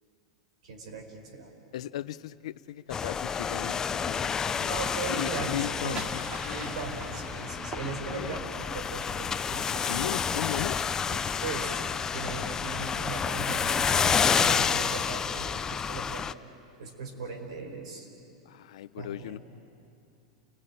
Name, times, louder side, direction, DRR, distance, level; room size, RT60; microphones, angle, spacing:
voice 1, 0.6-1.5 4.7-5.5 5.8-6.0 6.4-9.9 11.0-16.3 16.8-18.1 19.0-19.4, right 4 dB, 85° right, 3 dB, 4.8 m, -38 dB
voice 2, 1.7-4.8 5.1-6.0 8.1-8.3 9.8-10.8 18.5-19.4, left 12 dB, 75° left, 15 dB, 0.8 m, -37 dB
sound 1, 2.9-16.3, left 6 dB, 20° left, 0.5 m, -29 dB
sound 2, 5.7-8.5, right 3 dB, 35° right, 2.7 m, -43 dB
30.0 x 17.0 x 9.1 m, 2.6 s
supercardioid pair, 135°, 3 cm